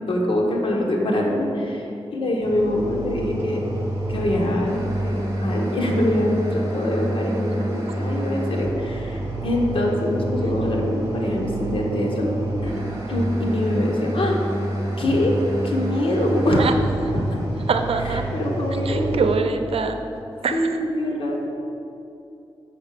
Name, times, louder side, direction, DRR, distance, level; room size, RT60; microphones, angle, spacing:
voice 1, 0.0-3.8 4.1-12.3 12.6-14.4 15.0-15.3 15.6-16.7 17.1-17.4 18.0-19.2 20.5-21.5, left 1 dB, 65° left, -1 dB, 1.5 m, -24 dB
sound 1, 2.4-19.4, right 1 dB, 30° right, 1.7 m, -28 dB
voice 2, 17.7-18.3 18.9-20.0 20.4-20.8, right 4 dB, 85° right, 7 dB, 0.6 m, -24 dB
6.5 x 5.8 x 6.8 m, 2.7 s
wide cardioid pair, 95°, 10 cm